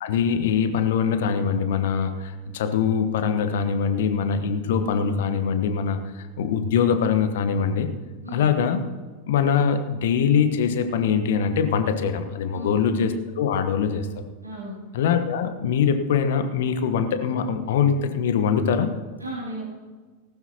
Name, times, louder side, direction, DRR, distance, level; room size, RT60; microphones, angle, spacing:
voice 1, 0.0-7.9 8.3-8.8 9.3-14.1 14.9-18.9, left 7 dB, 55° left, 9 dB, 1.2 m, -23 dB
voice 2, 12.5-12.9 14.4-14.8 19.2-19.6, equal, 80° right, -5 dB, 3.0 m, -34 dB
19.0 x 12.0 x 3.0 m, 1.4 s
figure-of-eight pair, 90°, 0 cm